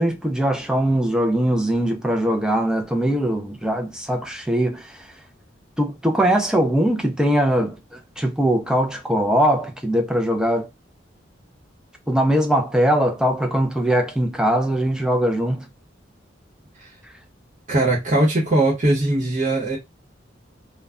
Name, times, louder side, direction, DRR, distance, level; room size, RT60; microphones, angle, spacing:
voice 1, 0.0-5.0 5.8-10.7 12.1-15.7, right 1 dB, 5° right, 0.4 m, -21 dB
voice 2, 17.7-19.8, right 2 dB, 40° right, 0.8 m, -20 dB
2.1 x 2.1 x 3.5 m
head